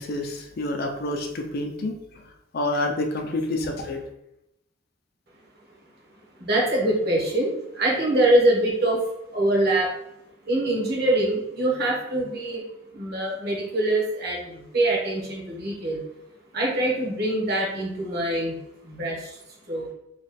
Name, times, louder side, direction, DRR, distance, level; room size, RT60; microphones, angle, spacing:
voice 1, 0.0-2.0 2.5-4.0, left 2 dB, 50° left, 3 dB, 0.5 m, -28 dB
voice 2, 6.4-9.9 10.5-12.6 12.9-16.0 16.5-18.5 18.8-19.4 19.7-19.9, right 1 dB, 50° right, -2 dB, 1.1 m, -24 dB
3.1 x 2.3 x 4.1 m, 0.83 s
head